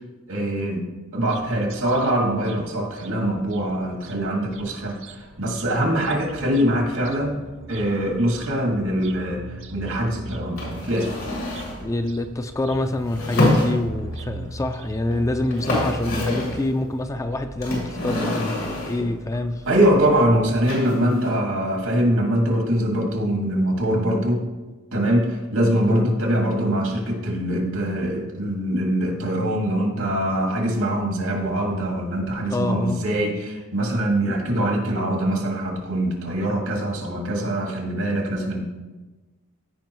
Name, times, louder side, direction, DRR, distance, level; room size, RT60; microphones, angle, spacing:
voice 1, 0.3-0.9 1.1-7.4 7.7-11.1 19.0-19.1 19.7-24.4 24.9-38.6, right 1 dB, 85° right, 0 dB, 2.0 m, -23 dB
sound 1, 1.3-20.7, right 2 dB, 65° right, 0.6 m, -40 dB
sound 2, 10.6-11.8 13.1-14.2 15.1-15.2 15.4-16.6 17.6-19.1 20.7-21.3, left 1 dB, 85° left, 2.9 m, -26 dB
voice 2, 11.8-19.6 21.0-21.3 25.9-26.1 32.5-33.0, left 2 dB, 15° left, 8 dB, 0.3 m, -26 dB
14.5 x 5.1 x 3.0 m, 1.2 s
head